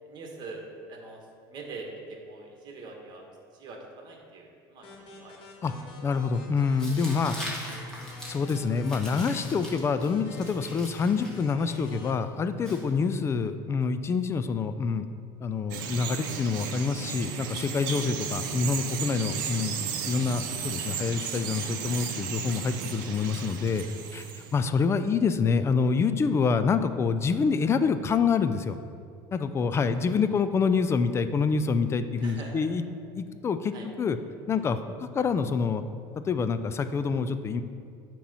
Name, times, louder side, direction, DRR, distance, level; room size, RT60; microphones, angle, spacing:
voice 1, 0.0-3.3 3.5-4.9 5.2-5.4 17.8-17.9 24.3-24.5 32.2-32.7 33.7-33.9 34.5-34.6, right 3 dB, 45° right, 1 dB, 1.3 m, -43 dB
sound 1, 4.8-12.1, left 2 dB, 50° left, 1.6 m, -49 dB
voice 2, 6.0-7.4 8.3-15.1 15.4-19.8 20.1-23.8 24.1-24.3 24.5-28.8 29.3-32.8 33.1-34.2 34.5-34.8 35.1-35.8 36.2-37.6, left 5 dB, 25° left, 11 dB, 0.4 m, -26 dB
Tearing, 6.8-13.4, left 1 dB, 5° left, 1.6 m, -41 dB
Bird vocalization bird call bird song, 15.7-24.6, right 7 dB, 80° right, 0.7 m, -34 dB
8.5 x 3.1 x 5.5 m, 2.3 s
supercardioid pair, 105°, 11 cm